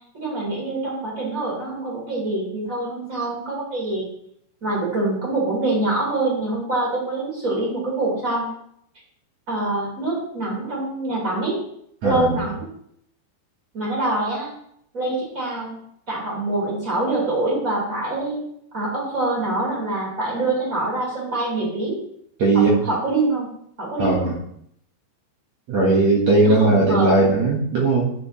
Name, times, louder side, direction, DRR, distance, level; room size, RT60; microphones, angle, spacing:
voice 1, 0.1-4.1 4.6-8.5 9.5-11.5 12.0-12.7 13.7-14.5 14.9-15.8 16.1-18.4 18.7-22.0 22.5-23.5 23.8-24.3 26.4-27.3, right 2 dB, 20° right, -4 dB, 3.6 m, -25 dB
voice 2, 12.0-12.4 22.4-22.8 24.0-24.3 25.7-28.1, right 2 dB, 55° right, -4 dB, 2.0 m, -18 dB
12.5 x 6.6 x 3.2 m, 0.70 s
omnidirectional pair, 5.1 m